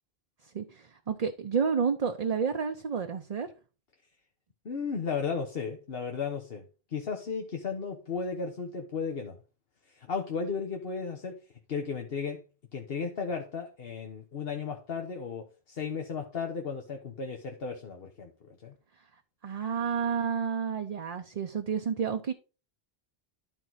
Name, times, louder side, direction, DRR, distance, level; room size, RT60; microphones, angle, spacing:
voice 1, 0.5-3.5 19.4-22.3, right 6 dB, 45° right, 6 dB, 0.7 m, -30 dB
voice 2, 4.6-9.4 9.9-11.4 11.7-12.4 12.7-18.7, left 5 dB, 70° left, 3 dB, 1.3 m, -35 dB
12.5 x 4.6 x 4.0 m, 0.34 s
omnidirectional pair, 1.0 m